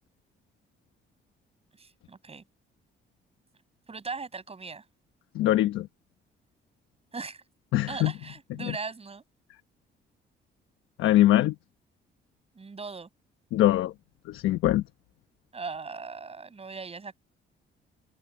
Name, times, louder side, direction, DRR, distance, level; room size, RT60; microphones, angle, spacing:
voice 1, 1.8-2.4 3.9-4.8 7.1-7.4 7.9-9.2 12.5-13.1 15.5-17.2, right 4 dB, 30° right, 7.3 m, -39 dB
voice 2, 5.3-5.9 7.7-8.1 11.0-11.5 13.5-13.9 14.3-14.8, left 14 dB, 90° left, 1.0 m, -22 dB
open air
cardioid pair, 90°, 20 cm